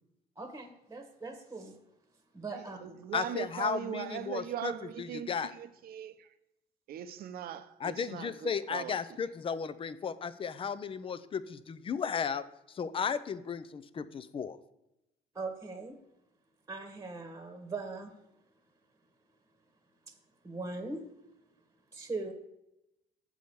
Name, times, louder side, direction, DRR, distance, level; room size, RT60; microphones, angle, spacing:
voice 1, 0.4-1.8 2.3-3.0 15.3-16.0 16.7-18.1 20.1-20.2 20.4-21.0 21.9-22.3, right 3 dB, 20° right, 1.2 m, -40 dB
voice 2, 2.5-6.3 6.9-9.0, right 10 dB, 65° right, 0.7 m, -40 dB
voice 3, 3.1-4.7 5.0-5.5 7.8-12.4 12.7-14.6, left 6 dB, 30° left, 0.5 m, -35 dB
7.7 x 4.9 x 6.9 m
cardioid pair, 110°, 17 cm